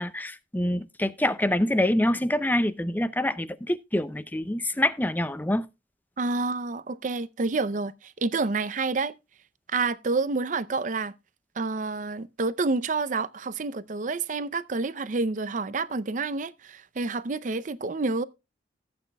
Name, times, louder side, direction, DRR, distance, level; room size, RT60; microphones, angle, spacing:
voice 1, 0.0-5.7, left 1 dB, 10° left, 0.5 m, -26 dB
voice 2, 6.2-9.1 9.7-11.1 11.6-18.2, right 3 dB, 45° right, 0.5 m, -28 dB
16.0 x 8.4 x 2.2 m
head